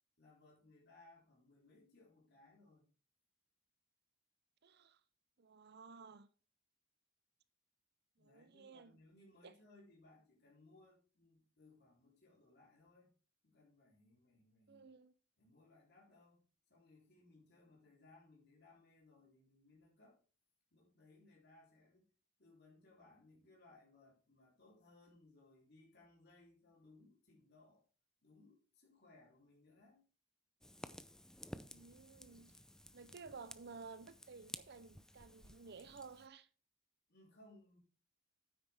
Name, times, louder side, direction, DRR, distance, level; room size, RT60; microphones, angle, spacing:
voice 1, 0.2-2.9 8.2-13.1 13.4-14.9 15.4-20.2 20.7-22.1 22.4-27.8 28.2-30.0 37.1-37.8, left 2 dB, 50° left, 3.5 m, -65 dB
voice 2, 4.6-5.0 5.4-6.3 8.2-9.0 9.4-9.5 14.7-15.1 31.7-32.6 32.9-36.5, right 4 dB, 50° right, 0.6 m, -55 dB
Fire, 30.6-36.3, left 1 dB, 5° left, 0.4 m, -55 dB
9.4 x 9.1 x 3.5 m
head